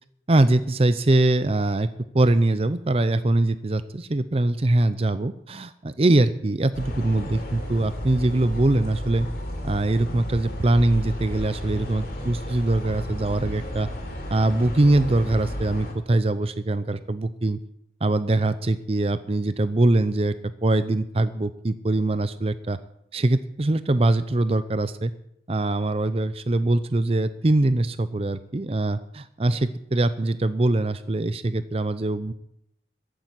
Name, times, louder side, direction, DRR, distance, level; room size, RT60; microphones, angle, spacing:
voice 1, 0.3-1.9 2.1-9.3 9.6-13.9 14.3-17.6 18.0-20.3 20.6-22.8 23.1-25.1 25.5-32.3, right 2 dB, 35° right, 13 dB, 0.6 m, -22 dB
sound 1, 6.7-15.9, equal, 60° left, 3.5 m, -33 dB
14.5 x 8.6 x 8.1 m, 0.77 s
head